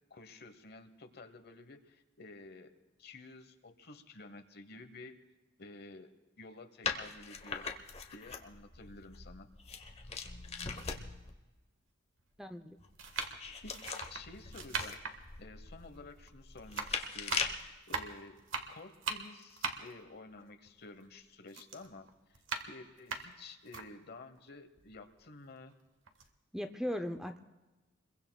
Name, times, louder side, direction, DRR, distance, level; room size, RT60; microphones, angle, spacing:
voice 1, 0.1-2.7 3.0-5.2 5.6-6.1 6.4-7.7 8.1-9.5 13.5-13.8 14.1-15.0 15.4-18.4 18.7-22.1 22.7-25.8, left 3 dB, 55° left, 8 dB, 1.0 m, -51 dB
sound 1, 6.8-11.3 12.8-17.7, left 5 dB, 35° left, 1.0 m, -41 dB
sound 2, 10.1-10.3 11.1-11.2 12.2-12.5 13.0-16.3 16.6-21.2 21.5-23.9 24.4-24.5 24.8-25.7 26.1-26.3, right 4 dB, 85° right, 1.4 m, -41 dB
voice 2, 12.4-12.8 26.5-27.4, equal, 5° right, 6 dB, 0.5 m, -38 dB
28.0 x 22.0 x 2.3 m, 1.1 s
head